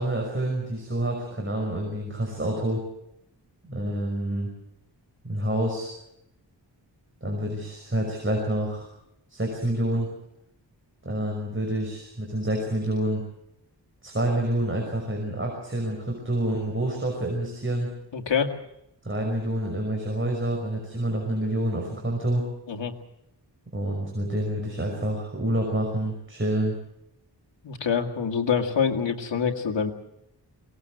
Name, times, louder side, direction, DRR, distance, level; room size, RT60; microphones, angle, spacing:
voice 1, 0.0-2.8 3.7-4.5 5.2-5.9 7.2-8.9 9.3-10.1 11.0-13.2 14.0-17.9 19.0-22.4 23.7-26.7, right 1 dB, 30° right, 0 dB, 5.6 m, -28 dB
voice 2, 18.1-18.5 22.7-22.9 27.6-29.9, left 6 dB, 90° left, 3 dB, 2.1 m, -25 dB
23.0 x 19.0 x 7.9 m, 0.82 s
wide cardioid pair, 125°, 42 cm